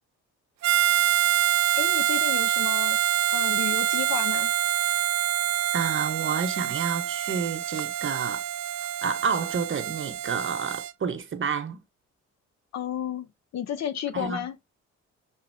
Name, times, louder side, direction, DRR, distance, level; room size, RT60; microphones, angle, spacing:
Harmonica, 0.6-10.9, right 12 dB, 60° right, 0.5 m, -26 dB
voice 1, 1.7-3.0 3.3-4.5 12.7-13.3 13.5-14.5, left 9 dB, 60° left, 0.7 m, -32 dB
voice 2, 5.7-8.4 9.0-11.8 14.1-14.5, right 6 dB, 40° right, 1.1 m, -29 dB
6.2 x 2.8 x 2.7 m
cardioid pair, 90°, 30 cm